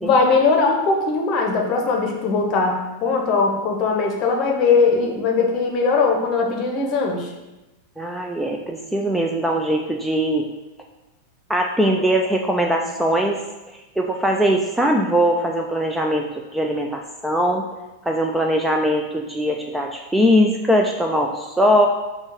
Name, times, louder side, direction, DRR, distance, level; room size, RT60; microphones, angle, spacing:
voice 1, 0.0-7.3, left 4 dB, 35° left, 1 dB, 0.7 m, -20 dB
voice 2, 8.0-10.5 11.5-13.4 14.0-17.7 18.1-21.9, equal, 5° right, 2 dB, 0.3 m, -21 dB
4.4 x 2.3 x 4.5 m, 1.0 s
figure-of-eight pair, 90°, 0 cm